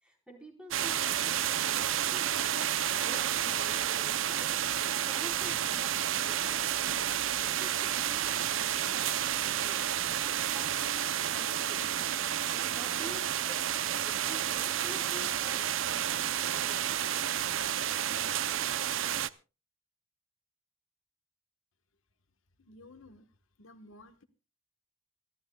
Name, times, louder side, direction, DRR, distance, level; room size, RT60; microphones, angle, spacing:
voice 1, 0.0-4.5 5.0-9.9 10.2-12.1 12.5-13.7 14.0-17.0, equal, 5° right, 2 dB, 4.1 m, -50 dB
sound 1, 0.7-19.3, right 10 dB, 75° right, 0.6 m, -30 dB
voice 2, 22.6-23.2 23.6-24.2, left 2 dB, 80° left, 8 dB, 1.3 m, -53 dB
27.0 x 13.0 x 2.3 m, 0.32 s
head